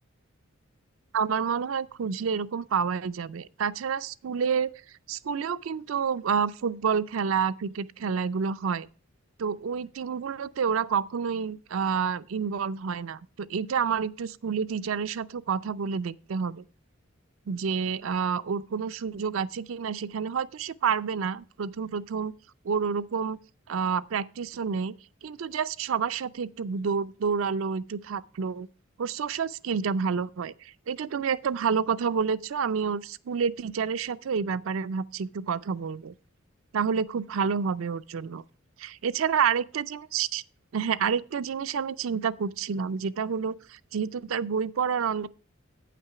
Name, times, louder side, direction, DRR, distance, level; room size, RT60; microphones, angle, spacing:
voice 1, 1.1-4.7 5.1-8.9 9.4-16.6 17.5-22.3 22.6-23.4 23.7-25.0 25.2-28.7 29.0-36.1 36.7-38.4 38.8-40.4 40.7-45.3, right 6 dB, 80° right, 0.4 m, -29 dB
8.8 x 5.9 x 5.7 m
head